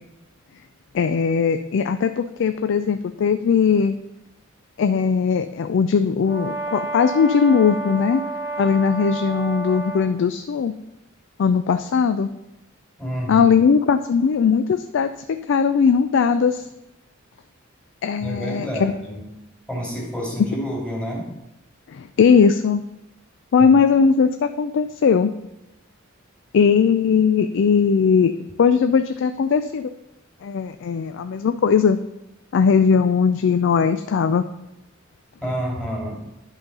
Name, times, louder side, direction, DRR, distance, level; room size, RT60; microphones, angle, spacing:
voice 1, 0.9-4.0 4.8-8.2 8.6-10.7 11.4-12.3 13.3-15.1 15.5-16.7 18.0-19.0 21.9-22.8 23.5-25.3 26.5-28.3 28.6-29.9 30.4-32.0 32.5-34.5, left 6 dB, 65° left, 9 dB, 0.4 m, -19 dB
Brass instrument, 6.2-10.1, right 2 dB, 15° right, 1.2 m, -30 dB
voice 2, 13.0-13.5 18.2-19.3 19.7-21.3 23.6-23.7 35.4-36.2, equal, 5° left, -3 dB, 2.5 m, -28 dB
10.5 x 3.9 x 5.3 m, 0.94 s
head